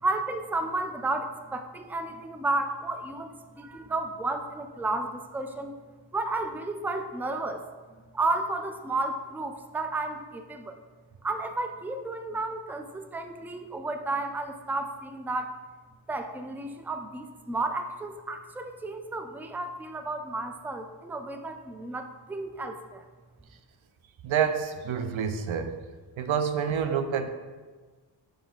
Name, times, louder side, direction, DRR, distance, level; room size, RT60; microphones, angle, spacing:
voice 1, 0.0-5.8 6.1-7.6 8.1-10.8 11.2-15.5 16.1-23.1, right 2 dB, 5° right, 6 dB, 0.4 m, -32 dB
voice 2, 24.2-25.8 26.2-27.3, right 7 dB, 90° right, 8 dB, 0.6 m, -28 dB
5.1 x 5.1 x 3.7 m, 1.4 s
wide cardioid pair, 65°, 46 cm